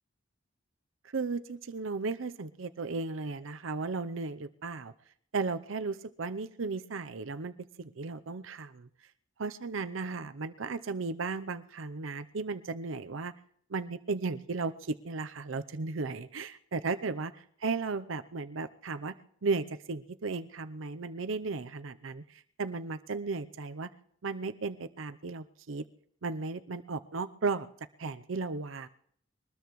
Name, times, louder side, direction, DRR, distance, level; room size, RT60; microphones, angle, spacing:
voice 1, 1.0-4.9 5.3-8.9 9.4-13.3 13.7-19.2 19.4-23.9 24.2-25.8 26.2-27.7 28.0-28.9, right 4 dB, 85° right, 10 dB, 0.7 m, -35 dB
23.0 x 20.0 x 3.1 m, 0.64 s
head